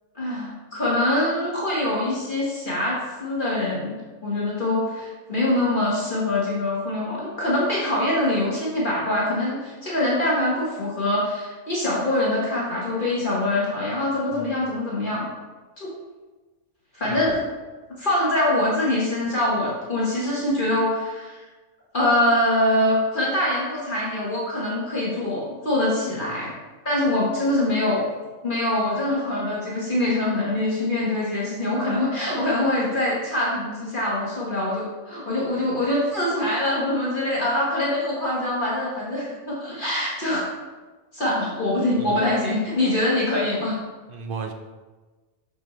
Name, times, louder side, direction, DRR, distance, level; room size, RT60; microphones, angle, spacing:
voice 1, 0.1-15.3 15.8-15.9 16.9-17.4 18.0-21.4 21.9-26.5 26.8-28.0 28.4-40.5 41.1-43.8, left 1 dB, 40° left, -6 dB, 1.4 m, -24 dB
voice 2, 44.1-44.5, right 5 dB, 55° right, 4 dB, 0.7 m, -34 dB
6.3 x 6.2 x 3.1 m, 1.3 s
omnidirectional pair, 1.3 m